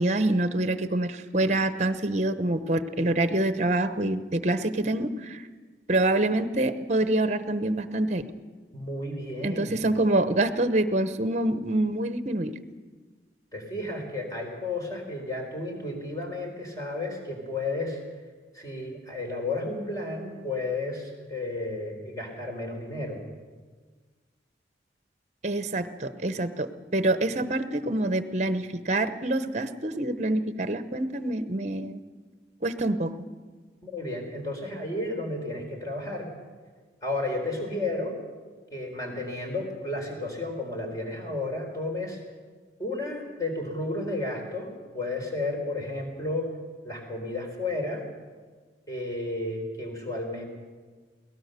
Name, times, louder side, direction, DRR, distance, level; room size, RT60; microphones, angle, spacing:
voice 1, 0.0-5.4 5.9-8.2 9.4-12.5 25.4-32.0 32.6-33.1, right 1 dB, 40° right, 11 dB, 1.0 m, -26 dB
voice 2, 8.7-9.8 13.5-18.0 18.5-23.2 33.8-36.3 37.0-38.2 38.7-42.2 42.8-46.5 46.8-48.0 48.9-50.4, left 2 dB, 20° left, 2 dB, 4.2 m, -32 dB
22.5 x 18.0 x 6.8 m, 1.5 s
head